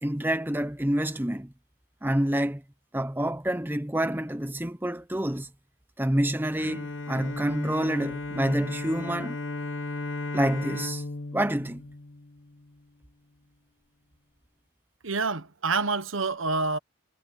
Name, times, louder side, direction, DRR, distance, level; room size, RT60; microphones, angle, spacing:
voice 1, 0.0-1.5 2.0-2.6 2.9-5.5 6.0-9.4 10.3-11.0 11.3-11.8, right 1 dB, 10° right, 0.8 m, -27 dB
Bowed string instrument, 6.6-12.8, left 2 dB, 65° left, 1.3 m, -35 dB
voice 2, 15.0-16.8, right 4 dB, 75° right, 1.2 m, -27 dB
head